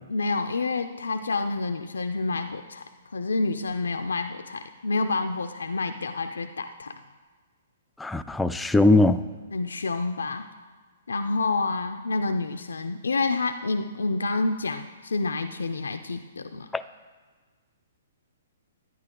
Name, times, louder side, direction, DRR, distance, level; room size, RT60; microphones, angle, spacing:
voice 1, 0.1-2.8 3.1-6.9 9.5-10.5 11.1-16.7, left 3 dB, 85° left, 8 dB, 0.5 m, -28 dB
voice 2, 8.0-9.2 16.7-16.8, left 2 dB, 5° left, 10 dB, 0.3 m, -20 dB
11.0 x 9.5 x 3.7 m, 1.4 s
hypercardioid pair, 130°, 0 cm